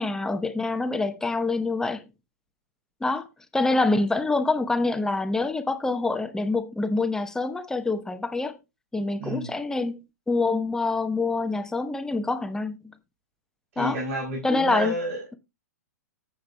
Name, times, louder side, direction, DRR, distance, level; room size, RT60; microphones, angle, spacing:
voice 1, 0.0-2.1 3.0-3.2 3.5-8.6 8.9-10.0 10.3-12.9 13.8-14.0 14.4-14.9, left 3 dB, 5° left, 0.8 m, -26 dB
voice 2, 13.7-15.2, equal, 55° right, 5.0 m, -30 dB
14.5 x 8.0 x 2.2 m
figure-of-eight pair, 110°, 9 cm